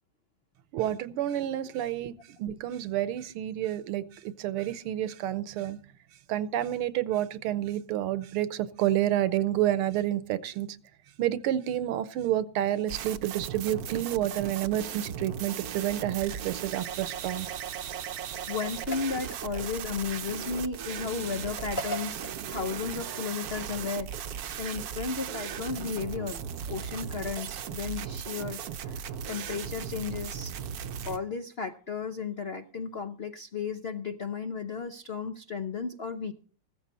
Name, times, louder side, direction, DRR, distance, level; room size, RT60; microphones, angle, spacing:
voice 1, 0.7-5.8 6.3-10.7 11.2-17.5, right 12 dB, 85° right, 15 dB, 1.7 m, -29 dB
sound 1, 12.9-31.2, right 8 dB, 60° right, 1.0 m, -37 dB
voice 2, 18.5-24.1 24.6-30.5 31.0-36.3, left 5 dB, 80° left, 8 dB, 0.5 m, -34 dB
sound 2, 18.6-19.9 21.6-22.4, right 1 dB, 25° left, 1.3 m, -38 dB
15.5 x 13.5 x 4.2 m, 0.42 s
omnidirectional pair, 2.4 m